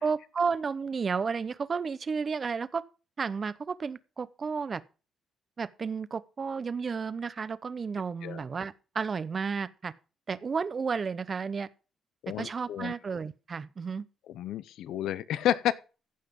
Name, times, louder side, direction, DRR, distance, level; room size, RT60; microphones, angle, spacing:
voice 1, 0.0-2.8 3.2-4.8 5.6-9.9 10.3-11.7 12.4-14.1, right 5 dB, 40° right, 0.7 m, -32 dB
voice 2, 12.2-12.9 14.3-15.7, left 11 dB, 80° left, 0.6 m, -30 dB
15.0 x 5.7 x 5.2 m
cardioid pair, 90°, 0 cm